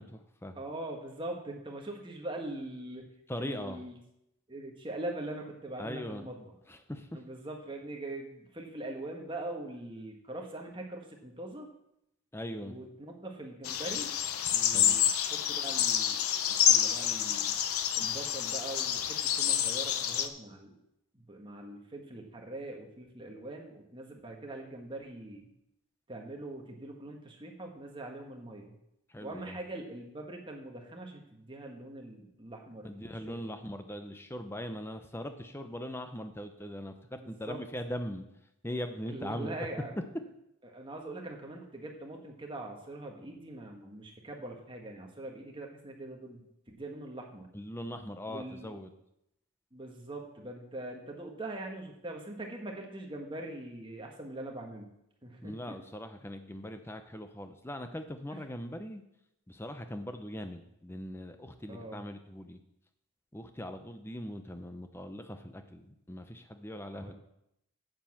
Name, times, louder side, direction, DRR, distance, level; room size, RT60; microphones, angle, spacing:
voice 1, 0.0-0.6 3.3-3.8 5.8-6.3 6.7-7.1 12.3-12.8 14.7-15.0 29.1-29.6 32.8-38.2 38.6-39.5 47.5-48.9 55.4-59.0 59.5-62.6 63.3-67.1, equal, 10° left, 7 dB, 0.7 m, -40 dB
voice 2, 0.5-3.1 3.4-4.0 4.5-6.5 7.1-11.7 12.6-14.1 14.5-15.0 15.3-16.2 16.5-17.5 17.9-20.7 21.1-25.5 26.1-28.8 29.2-33.5 37.2-37.6 39.1-40.0 40.6-47.5 48.3-48.8 49.7-54.9 55.2-55.8 58.3-58.4 61.7-62.0 66.9-67.1, right 2 dB, 20° right, 1 dB, 1.4 m, -42 dB
sound 1, 13.6-20.3, left 10 dB, 85° left, 0.7 m, -28 dB
7.8 x 7.2 x 7.1 m, 0.81 s
head